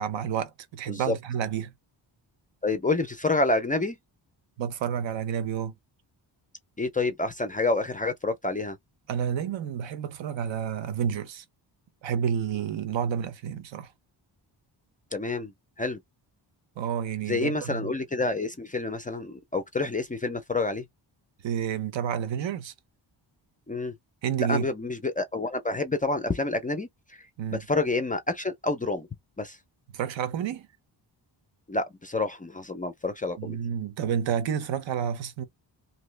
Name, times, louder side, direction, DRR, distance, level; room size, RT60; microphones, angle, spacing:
voice 1, 0.0-1.7 4.6-5.7 9.1-11.4 12.0-13.9 16.8-17.9 21.4-22.7 24.2-24.7 27.4-27.6 29.9-30.7 33.4-35.4, right 8 dB, 80° right, 0.8 m, -30 dB
voice 2, 2.6-4.0 6.8-8.8 15.1-15.5 15.8-16.0 17.3-20.9 23.7-23.9 24.5-27.3 27.5-29.1 29.4-29.6 31.7-33.6, left 2 dB, 20° left, 0.3 m, -28 dB
2.9 x 2.7 x 3.2 m
wide cardioid pair, 165°, 45 cm